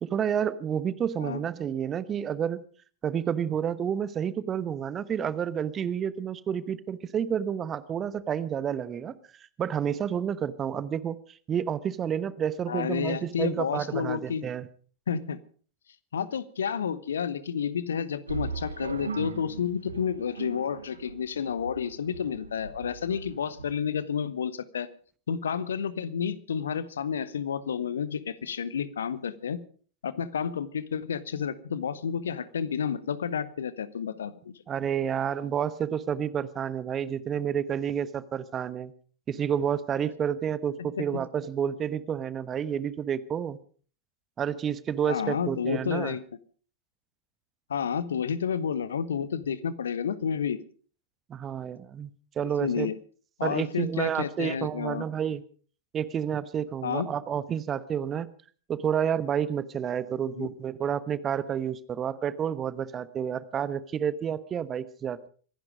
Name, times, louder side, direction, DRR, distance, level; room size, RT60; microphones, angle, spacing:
voice 1, 0.0-2.6 3.0-9.1 9.6-14.7 34.7-38.9 39.3-43.6 44.4-46.2 51.3-52.1 52.4-52.9 53.4-55.4 55.9-58.3 58.7-65.3, right 8 dB, 25° right, 16 dB, 1.1 m, -30 dB
voice 2, 12.7-14.4 15.1-15.4 16.1-24.9 25.3-29.6 30.0-34.6 40.8-41.0 45.0-46.2 47.7-50.6 52.6-53.0 53.4-55.0 56.8-57.1 60.3-60.5, left 7 dB, 65° left, 16 dB, 1.1 m, -30 dB
sound 1, 18.3-23.8, right 5 dB, 75° right, 1.2 m, -39 dB
25.0 x 11.0 x 5.1 m, 0.43 s
figure-of-eight pair, 90°, 0 cm